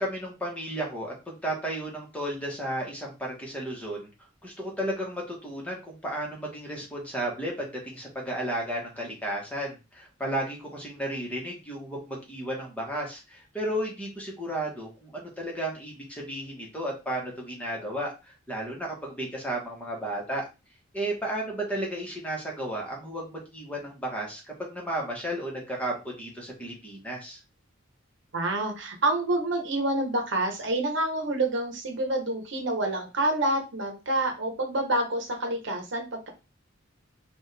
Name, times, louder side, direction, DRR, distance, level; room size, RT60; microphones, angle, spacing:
voice 1, 0.0-4.1 4.4-20.4 20.9-27.4, right 1 dB, 5° left, -3 dB, 1.5 m, -33 dB
voice 2, 28.3-36.3, right 2 dB, 60° right, 3 dB, 1.1 m, -28 dB
5.3 x 2.6 x 3.4 m, 0.28 s
head